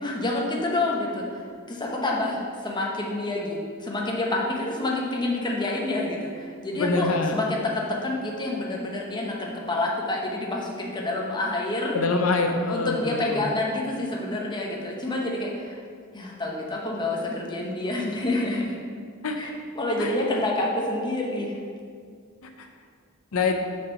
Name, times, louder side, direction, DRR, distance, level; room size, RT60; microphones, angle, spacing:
voice 1, 0.0-12.0 12.7-15.8 16.1-18.8 19.4-19.5 19.8-21.6, left 2 dB, 20° left, -2 dB, 0.9 m, -28 dB
voice 2, 6.7-7.4 11.9-13.4 19.2-19.4 20.0-20.1 22.4-22.7 23.3-23.6, left 3 dB, 80° left, 4 dB, 0.6 m, -25 dB
6.0 x 4.4 x 5.8 m, 2.1 s
head